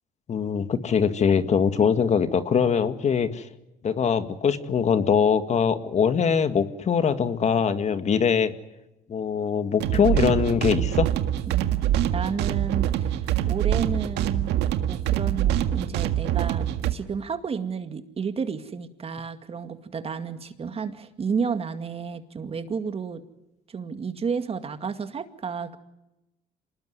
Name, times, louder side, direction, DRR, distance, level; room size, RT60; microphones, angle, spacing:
voice 1, 0.3-3.5 3.8-8.5 9.1-11.1, left 6 dB, 45° left, 10 dB, 2.0 m, -22 dB
sound 1, 9.8-16.9, right 11 dB, 85° right, 1.8 m, -25 dB
voice 2, 11.5-14.5 14.9-23.2 23.7-25.8, right 6 dB, 35° right, 9 dB, 2.1 m, -32 dB
26.5 x 20.0 x 9.6 m, 0.93 s
cardioid pair, 110°, 17 cm